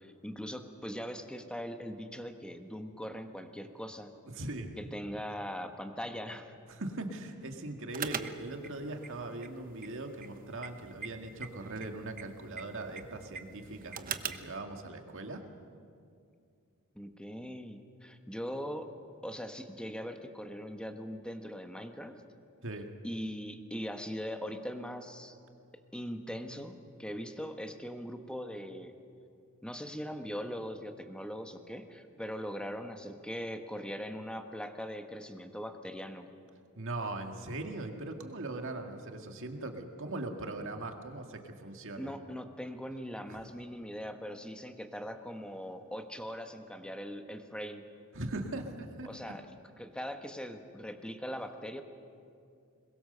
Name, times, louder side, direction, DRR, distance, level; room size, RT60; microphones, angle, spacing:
voice 1, 0.0-4.1 4.8-6.5 16.9-18.9 19.2-22.2 23.0-25.4 25.9-28.9 29.6-36.3 42.0-47.9 49.1-49.5 49.8-51.8, equal, 5° left, 6 dB, 1.2 m, -41 dB
voice 2, 4.3-4.7 6.7-15.4 22.6-22.9 36.8-42.2 48.1-49.3, right 2 dB, 60° right, 4 dB, 1.9 m, -40 dB
sound 1, 7.9-14.6, right 7 dB, 40° right, 0.9 m, -43 dB
22.0 x 21.5 x 6.8 m, 2.4 s
head